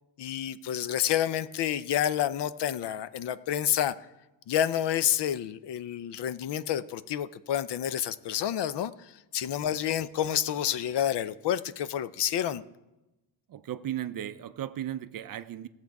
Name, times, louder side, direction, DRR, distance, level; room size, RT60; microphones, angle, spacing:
voice 1, 0.2-4.0 4.5-12.6, left 10 dB, 60° left, 15 dB, 0.5 m, -29 dB
voice 2, 13.5-15.7, right 11 dB, 45° right, 12 dB, 0.5 m, -36 dB
16.5 x 7.3 x 4.7 m, 1.0 s
cardioid pair, 135°, 47 cm